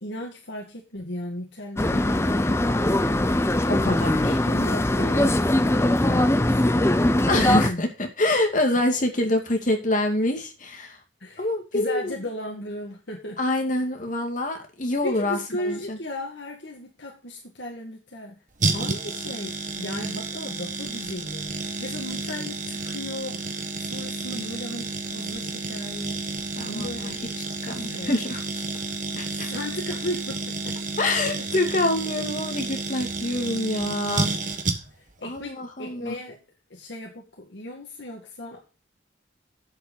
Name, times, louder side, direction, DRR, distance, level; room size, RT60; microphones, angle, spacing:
voice 1, 0.0-2.6 4.3-7.8 11.2-11.5 11.7-13.4 15.0-18.4 18.7-26.3 26.7-27.3 27.7-28.1 29.3-30.8 31.4-31.5 35.2-36.4 36.7-38.7, left 1 dB, 70° left, -1 dB, 2.1 m, -36 dB
sound 1, 1.8-7.7, left 1 dB, 15° left, 0.6 m, -21 dB
voice 2, 3.7-4.3 7.3-11.0 11.4-12.2 13.4-15.4 15.7-16.0 26.6-27.1 27.6-28.4 29.2-29.5 31.0-34.3 35.2-36.2, left 1 dB, 45° left, 4 dB, 2.3 m, -26 dB
sound 2, 18.6-35.1 35.4-35.5, right 3 dB, 45° right, 1.5 m, -31 dB
8.2 x 7.9 x 6.4 m, 0.32 s
head